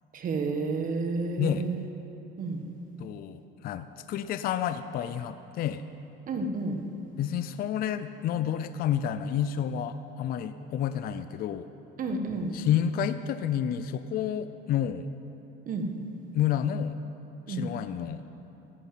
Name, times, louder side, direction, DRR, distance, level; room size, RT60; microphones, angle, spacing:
voice 1, 0.1-1.8 2.4-2.6 6.3-6.8 12.0-12.5 15.7-15.9 17.5-17.7, right 3 dB, 40° right, 4 dB, 1.5 m, -30 dB
voice 2, 3.0-5.8 7.2-11.7 12.5-15.1 16.3-17.0 17.5-18.2, left 9 dB, 45° left, 11 dB, 0.5 m, -30 dB
13.5 x 9.8 x 9.0 m, 3.0 s
cardioid pair, 160°, 21 cm